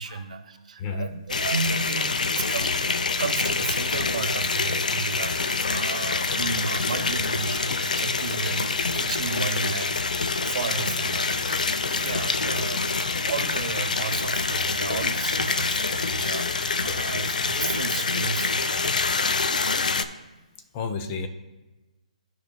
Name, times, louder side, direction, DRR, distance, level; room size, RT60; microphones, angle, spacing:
voice 1, 0.0-18.9, right 5 dB, 65° right, 8 dB, 0.8 m, -33 dB
sound 1, 1.3-20.0, left 4 dB, 80° left, 0.5 m, -26 dB
sound 2, 10.3-17.4, left 1 dB, 45° left, 2.5 m, -47 dB
voice 2, 20.7-21.3, left 4 dB, 25° left, 8 dB, 0.5 m, -30 dB
15.0 x 5.0 x 2.2 m, 1.1 s
hypercardioid pair, 160°, 4 cm